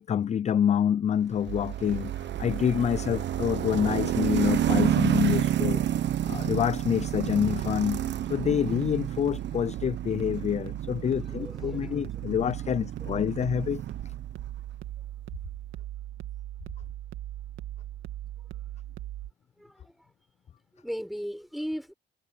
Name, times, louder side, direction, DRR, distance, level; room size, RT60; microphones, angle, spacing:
voice 1, 0.0-5.8 6.2-8.0 8.3-13.8, left 9 dB, 35° left, 0.4 m, -27 dB
sound 1, 1.4-14.5, right 11 dB, 65° right, 1.1 m, -30 dB
sound 2, 1.5-19.3, right 13 dB, 90° right, 1.9 m, -39 dB
voice 2, 11.0-12.0 13.0-13.1 19.6-20.1 20.7-21.9, equal, ahead, 7.0 m, -37 dB
cardioid pair, 90°, 20 cm